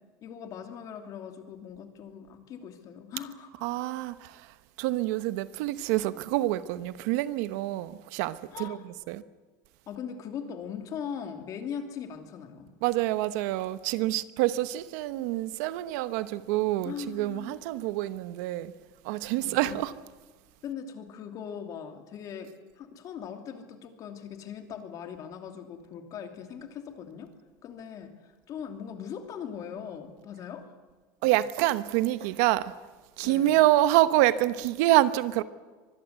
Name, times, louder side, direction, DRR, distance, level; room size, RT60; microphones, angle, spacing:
voice 1, 0.2-3.6 8.5-8.8 9.9-12.7 16.8-17.6 19.4-19.8 20.6-27.3 27.6-30.7 33.2-33.6, left 7 dB, 35° left, 2.9 m, -40 dB
voice 2, 3.6-9.2 12.8-18.7 19.0-19.9 31.2-32.7 33.2-35.4, right 15 dB, 65° right, 1.1 m, -27 dB
24.0 x 21.0 x 8.2 m
supercardioid pair, 155°, 10 cm